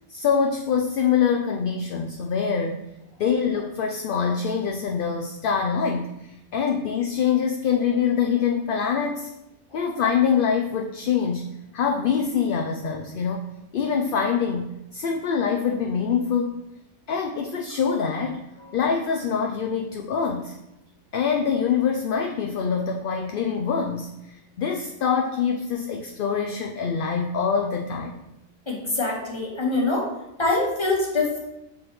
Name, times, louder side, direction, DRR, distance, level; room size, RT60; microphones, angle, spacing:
voice 1, 0.1-2.8 3.2-9.3 9.7-16.5 17.1-18.5 18.7-20.6 21.1-28.2, left 6 dB, 55° left, 3 dB, 0.6 m, -25 dB
voice 2, 28.7-30.1 30.4-31.4, left 2 dB, 25° left, -2 dB, 1.4 m, -24 dB
8.6 x 4.0 x 3.1 m, 0.93 s
omnidirectional pair, 1.3 m